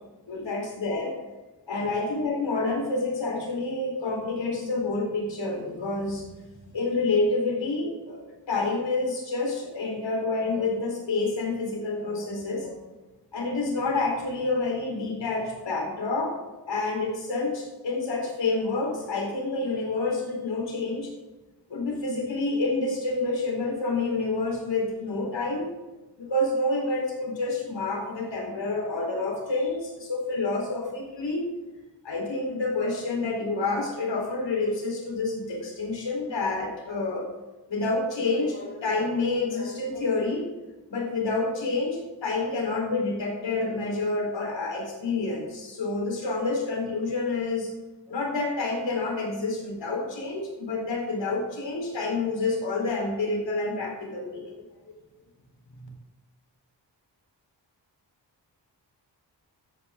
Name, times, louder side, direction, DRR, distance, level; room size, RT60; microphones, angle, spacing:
voice 1, 0.3-1.2 1.7-6.3 6.6-8.2 8.5-12.8 13.3-16.4 16.7-21.1 21.7-25.7 26.2-31.5 32.0-37.3 37.7-40.5 40.9-47.7 48.1-54.5 55.7-55.9, left 3 dB, 80° left, -1 dB, 4.1 m, -28 dB
13.5 x 9.0 x 3.7 m, 1.1 s
cardioid pair, 65°, 42 cm